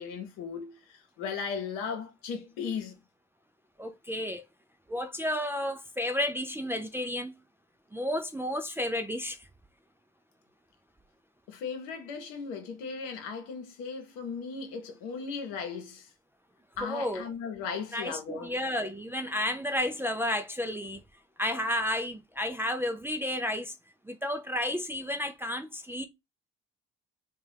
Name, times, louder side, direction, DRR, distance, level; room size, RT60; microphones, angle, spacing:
voice 1, 0.0-3.0 11.5-16.1 16.8-18.5, left 5 dB, 70° left, 0.9 m, -37 dB
voice 2, 3.8-4.4 4.9-7.3 7.9-9.5 16.8-17.2 17.9-21.0 21.4-23.7 24.1-26.0, left 1 dB, 5° right, 0.4 m, -32 dB
2.7 x 2.3 x 3.3 m
hypercardioid pair, 55°, 33 cm